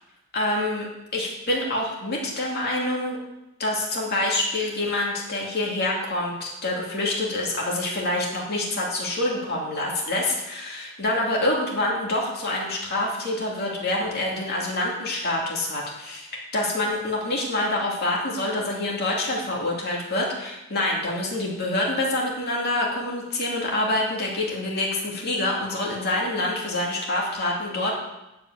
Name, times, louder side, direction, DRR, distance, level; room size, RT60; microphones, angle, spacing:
voice 1, 0.3-3.2 3.6-28.0, left 1 dB, 50° left, -3 dB, 2.6 m, -26 dB
11.0 x 5.2 x 8.1 m, 0.94 s
head